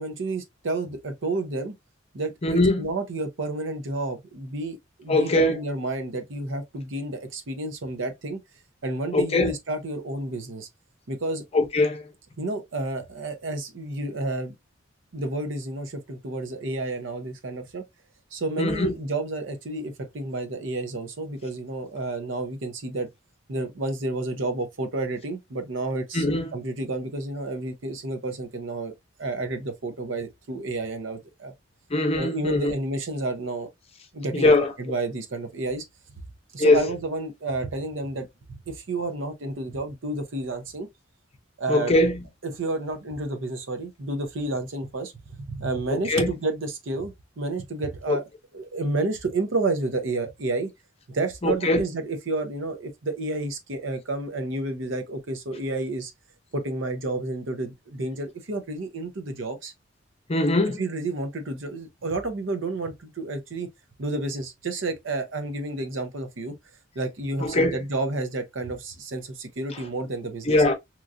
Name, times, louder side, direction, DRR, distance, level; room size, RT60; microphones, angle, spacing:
voice 1, 0.0-1.7 2.1-8.4 8.8-10.7 11.1-11.4 12.4-14.5 15.1-17.8 18.3-23.1 23.5-26.3 26.5-28.9 29.2-31.5 32.1-33.7 34.1-34.5 34.8-35.8 36.5-40.9 41.6-41.9 42.4-45.1 45.5-48.2 48.5-50.7 51.1-56.1 56.5-59.7 60.8-63.7 64.0-66.5 67.0-70.6, right 2 dB, 75° right, 0.7 m, -30 dB
voice 2, 2.4-2.9 5.1-5.6 9.1-9.5 11.5-12.1 18.6-18.9 26.1-26.5 31.9-32.7 34.3-34.7 36.6-36.8 41.7-42.3 45.9-46.3 48.1-48.2 51.4-51.8 60.3-60.8 67.4-67.8 69.7-69.8 70.5-70.7, left 2 dB, 30° left, 0.6 m, -21 dB
3.0 x 2.4 x 2.5 m
head